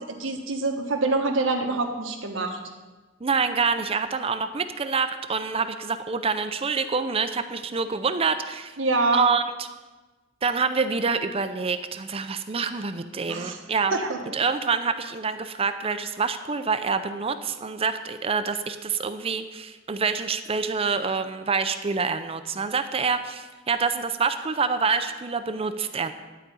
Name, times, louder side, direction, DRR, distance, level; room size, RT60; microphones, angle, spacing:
voice 1, 0.1-2.6 8.8-9.2 13.3-13.6 13.9-14.3, right 3 dB, 90° right, 3 dB, 1.4 m, -26 dB
voice 2, 3.2-8.8 9.1-9.7 10.4-14.0 14.3-26.1, right 5 dB, 30° right, 9 dB, 0.5 m, -26 dB
11.5 x 5.0 x 8.4 m, 1.2 s
head